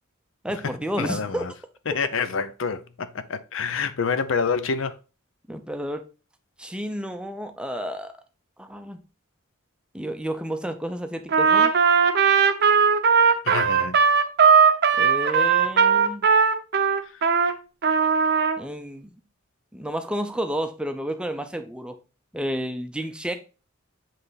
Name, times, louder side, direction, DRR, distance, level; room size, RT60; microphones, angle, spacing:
voice 1, 0.4-1.4 5.5-6.1 6.6-8.2 8.6-9.0 9.9-11.7 15.0-16.3 18.6-19.2 19.7-22.0 22.3-23.3, equal, 5° right, 0.5 m, -31 dB
voice 2, 1.0-1.5 1.9-5.0 13.4-14.0 17.0-17.2, left 5 dB, 65° left, 0.5 m, -27 dB
Trumpet, 11.3-17.5 17.8-18.6, right 6 dB, 55° right, 0.7 m, -18 dB
7.6 x 3.3 x 4.0 m
head